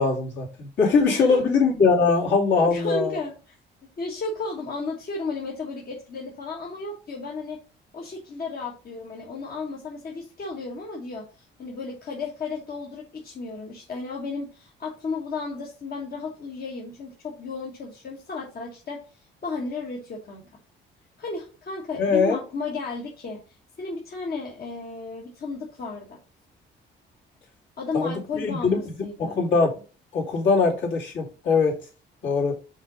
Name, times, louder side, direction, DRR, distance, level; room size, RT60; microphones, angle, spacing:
voice 1, 0.0-3.2 22.0-22.4 27.9-29.7 30.1-31.8 32.2-32.6, left 4 dB, 70° left, -4 dB, 2.8 m, -22 dB
voice 2, 1.1-1.4 2.6-3.5 4.0-7.6 7.9-11.3 11.6-19.0 19.4-20.5 21.2-23.4 23.8-26.2 27.8-29.4, left 3 dB, 50° left, -1 dB, 1.4 m, -33 dB
5.4 x 3.8 x 4.9 m, 0.35 s
cardioid pair, 90°, 20 cm